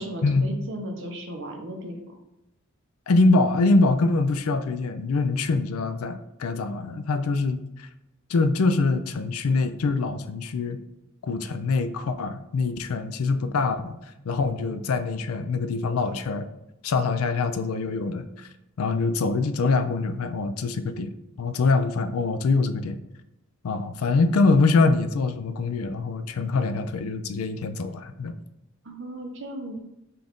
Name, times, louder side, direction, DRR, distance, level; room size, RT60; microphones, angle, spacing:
voice 1, 0.0-2.1 28.8-29.8, right 1 dB, 60° right, 2 dB, 0.8 m, -36 dB
voice 2, 3.1-7.9 8.3-10.8 11.2-13.9 14.3-16.5 16.8-18.5 18.8-21.1 21.4-23.0 23.6-28.3, left 3 dB, 80° left, 10 dB, 0.4 m, -24 dB
5.7 x 2.5 x 3.5 m, 0.90 s
head